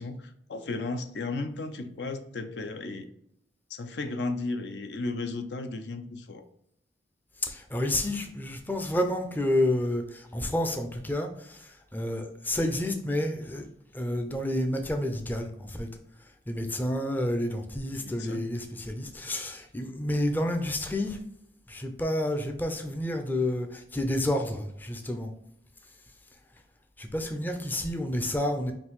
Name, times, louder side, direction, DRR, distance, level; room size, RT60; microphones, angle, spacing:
voice 1, 0.0-3.1 3.7-6.5 18.0-18.4, left 3 dB, 75° left, 8 dB, 0.5 m, -34 dB
voice 2, 7.4-13.7 13.9-15.9 16.2-21.2 21.7-25.3 27.0-28.7, left 1 dB, 10° left, 5 dB, 0.4 m, -30 dB
5.2 x 2.7 x 3.0 m, 0.75 s
head